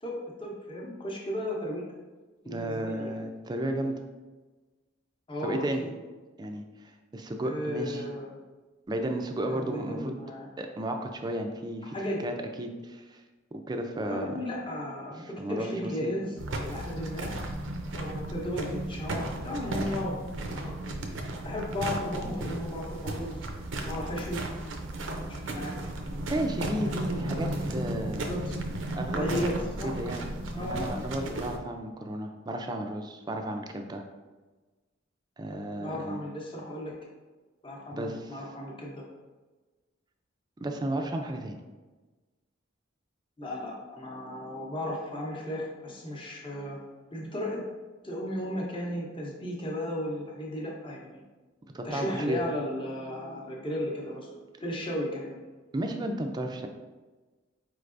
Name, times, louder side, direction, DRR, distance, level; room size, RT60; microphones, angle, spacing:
voice 1, 0.0-1.8 2.4-3.2 5.3-5.9 7.4-8.3 9.5-10.5 11.9-12.2 14.0-17.3 17.9-20.1 20.5-21.0 21.4-23.4 23.9-24.4 25.4-25.8 26.8-27.5 28.2-28.5 29.1-29.9 30.5-30.9 35.8-36.9 37.6-39.0 43.4-46.8 47.1-47.6 48.0-51.2 51.8-55.4, left 1 dB, 25° left, -3 dB, 0.8 m, -35 dB
voice 2, 2.5-4.0 5.4-5.9 6.4-8.0 8.9-10.2 10.6-12.0 12.2-13.2 13.5-14.4 15.2-16.1 26.3-28.3 28.9-29.6 29.8-30.3 30.5-34.0 35.4-36.2 37.9-38.4 40.6-41.6 51.6-52.4 55.7-56.7, right 1 dB, 20° right, 4 dB, 0.4 m, -33 dB
sound 1, 16.4-31.6, right 1 dB, 80° right, 0.5 m, -34 dB
4.8 x 3.3 x 2.5 m, 1.2 s
head